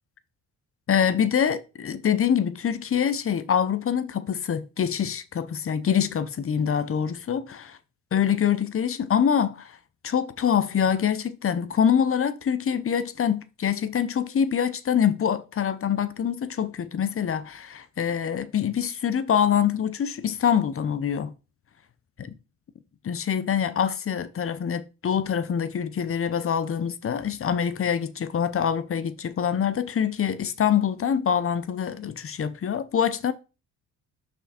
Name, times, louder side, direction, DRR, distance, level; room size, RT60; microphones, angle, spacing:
voice 1, 0.9-7.8 8.1-9.7 10.0-21.3 22.2-22.3 23.0-33.3, left 8 dB, 40° left, 0.8 m, -25 dB
5.7 x 5.2 x 4.3 m
cardioid pair, 85°, 35 cm